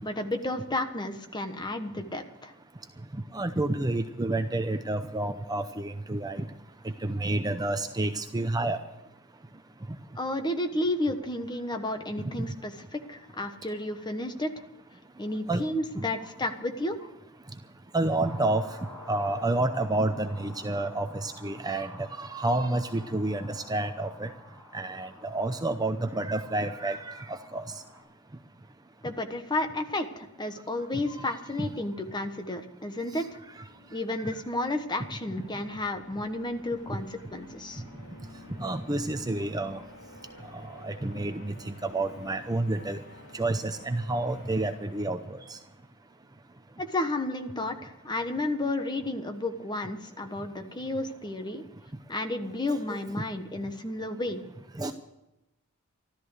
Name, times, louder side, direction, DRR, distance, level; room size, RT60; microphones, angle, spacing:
voice 1, 0.0-2.5 10.2-14.5 15.2-17.0 29.0-33.4 33.9-37.8 46.8-51.6 52.1-54.4, left 2 dB, 20° left, 7 dB, 1.3 m, -32 dB
voice 2, 3.3-6.4 7.0-8.8 15.5-15.6 17.9-18.6 19.1-24.3 24.7-27.6 31.2-31.3 31.6-31.7 38.6-39.8 40.8-43.0 43.3-45.2 45.5-45.6 52.7-53.0 54.8-54.9, right 2 dB, 15° right, 8 dB, 0.7 m, -29 dB
sound 1, 18.2-28.0, left 1 dB, ahead, 5.2 m, -50 dB
sound 2, 33.1-45.9, left 1 dB, 60° left, 4.7 m, -51 dB
14.0 x 13.0 x 6.4 m, 0.92 s
head